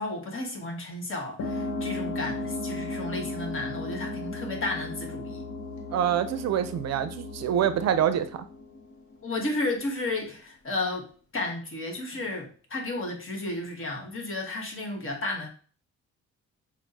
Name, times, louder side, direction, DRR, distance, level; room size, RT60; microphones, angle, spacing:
voice 1, 0.0-5.4 9.2-15.5, left 2 dB, 45° left, 2 dB, 1.3 m, -33 dB
sound 1, 1.4-9.5, left 2 dB, 70° left, 1.1 m, -35 dB
voice 2, 5.9-8.5, right 9 dB, 60° right, 11 dB, 0.5 m, -26 dB
6.1 x 2.1 x 2.8 m, 0.40 s
cardioid pair, 90°, 30 cm